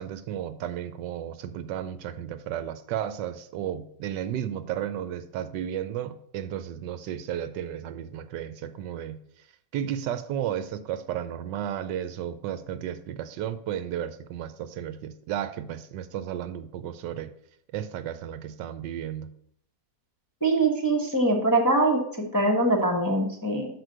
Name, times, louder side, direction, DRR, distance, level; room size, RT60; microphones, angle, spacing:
voice 1, 0.0-9.2 9.7-17.3 17.7-19.3, right 10 dB, 80° right, 11 dB, 1.3 m, -33 dB
voice 2, 20.4-23.7, right 2 dB, 15° left, 0 dB, 0.7 m, -23 dB
6.1 x 4.9 x 6.5 m, 0.70 s
omnidirectional pair, 1.9 m